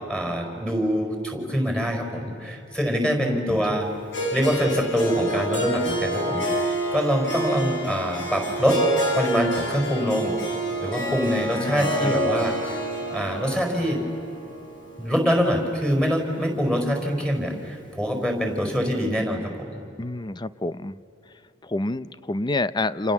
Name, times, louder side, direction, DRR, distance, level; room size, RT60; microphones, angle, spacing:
voice 1, 0.1-3.9 4.3-8.8 9.1-10.3 10.8-12.8 13.1-14.0 15.0-19.8, equal, 5° left, 4 dB, 4.6 m, -25 dB
voice 2, 3.2-3.8 11.5-12.1 20.0-21.0 21.6-23.1, left 2 dB, 20° left, 15 dB, 0.6 m, -28 dB
Harp, 4.1-16.3, right 1 dB, 65° left, 6.2 m, -28 dB
29.0 x 28.5 x 7.2 m, 2.8 s
head